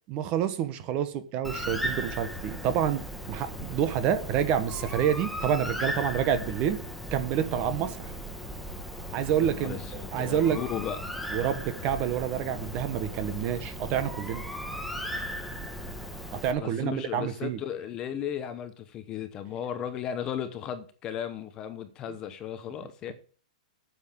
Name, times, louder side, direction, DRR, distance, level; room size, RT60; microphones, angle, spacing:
voice 1, 0.1-6.8 7.1-8.1 9.1-10.6 11.3-14.4 16.4-17.6, right 9 dB, 25° right, 12 dB, 1.1 m, -28 dB
Bird, 1.4-16.5, equal, ahead, 1.0 m, -37 dB
voice 2, 9.4-11.0 16.6-23.1, left 9 dB, 15° left, 10 dB, 0.9 m, -35 dB
9.1 x 6.9 x 7.3 m, 0.40 s
hypercardioid pair, 175°, 4 cm